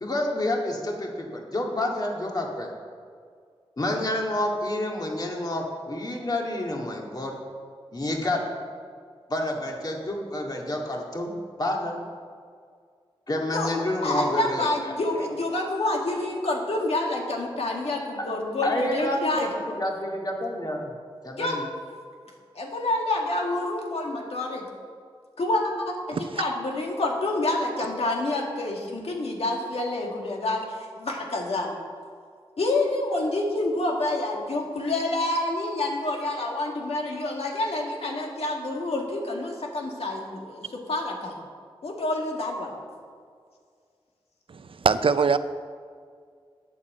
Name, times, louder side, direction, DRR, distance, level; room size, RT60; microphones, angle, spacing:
voice 1, 0.0-2.7 3.8-7.4 7.9-8.4 9.3-12.0 13.3-15.0 18.6-20.9 21.2-21.7, left 1 dB, 40° left, 0 dB, 2.0 m, -29 dB
voice 2, 14.0-19.5 21.3-21.6 22.6-24.7 25.4-31.7 32.6-41.3 41.8-42.7, left 2 dB, 85° left, 0 dB, 1.9 m, -28 dB
voice 3, 44.5-45.4, right 5 dB, 65° right, 12 dB, 0.5 m, -22 dB
9.2 x 8.3 x 7.5 m, 2.1 s
wide cardioid pair, 85°, 10 cm